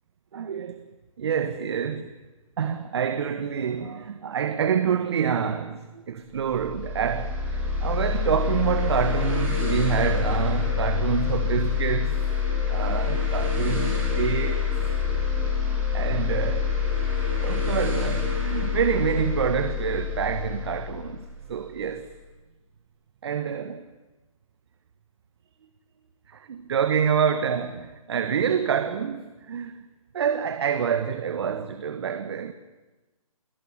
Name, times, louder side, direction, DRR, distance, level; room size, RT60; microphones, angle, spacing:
voice 1, 0.3-0.8 1.2-2.1 2.6-12.3 12.7-14.7 15.9-16.7 17.4-22.1 23.2-23.9 26.3-29.8 30.1-32.5, right 7 dB, 45° right, 1.4 m, -27 dB
sound 1, 6.4-21.9, left 6 dB, 10° right, 7.5 m, -26 dB
26.5 x 21.0 x 9.8 m
figure-of-eight pair, 145°, 18 cm